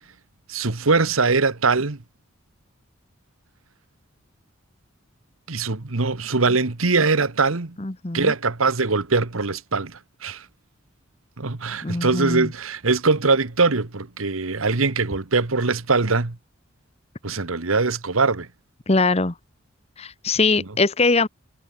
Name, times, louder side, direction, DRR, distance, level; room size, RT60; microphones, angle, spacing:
voice 1, 0.5-2.0 5.5-7.8 8.1-10.4 11.4-16.4 17.2-18.5, right 4 dB, 85° right, 1.4 m, -22 dB
voice 2, 7.8-8.3 11.8-12.5 18.9-19.3 20.0-21.3, left 3 dB, 30° left, 1.1 m, -21 dB
head